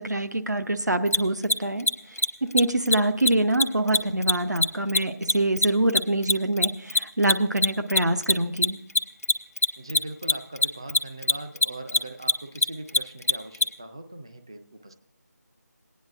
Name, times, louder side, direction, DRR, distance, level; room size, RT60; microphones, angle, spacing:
voice 1, 0.0-1.9 2.4-8.8, right 1 dB, 85° right, 8 dB, 0.8 m, -25 dB
Mechanisms, 1.1-1.2 1.4-1.5 1.8-1.9 2.2-2.3 2.5-2.6 2.9-3.0 3.2-3.3 3.6-6.3 6.6-13.6, left 2 dB, 60° left, 0.6 m, -21 dB
voice 2, 9.8-14.9, right 2 dB, 15° right, 7 dB, 0.3 m, -40 dB
20.5 x 9.4 x 2.4 m, 0.73 s
figure-of-eight pair, 165°, 9 cm